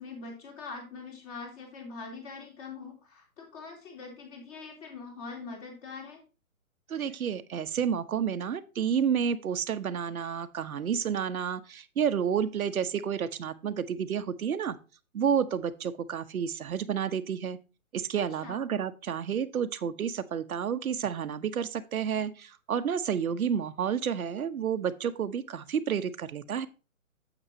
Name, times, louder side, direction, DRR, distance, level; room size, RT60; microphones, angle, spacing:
voice 1, 0.0-6.2 18.2-18.6, left 4 dB, 30° left, 1 dB, 3.3 m, -43 dB
voice 2, 6.9-14.8 15.1-17.6 17.9-26.7, right 7 dB, 85° right, 10 dB, 1.0 m, -30 dB
9.0 x 8.0 x 2.8 m, 0.32 s
hypercardioid pair, 160°, 42 cm